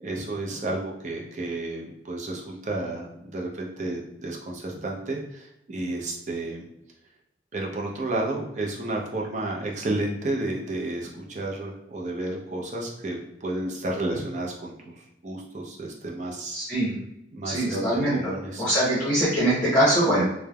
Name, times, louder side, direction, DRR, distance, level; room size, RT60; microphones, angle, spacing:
voice 1, 0.0-6.6 7.5-16.6 17.3-18.6, right 2 dB, 40° right, -1 dB, 0.5 m, -31 dB
voice 2, 16.5-16.9 17.4-18.3 18.6-20.2, right 1 dB, 10° left, -11 dB, 0.8 m, -22 dB
3.1 x 2.0 x 2.3 m, 0.81 s
head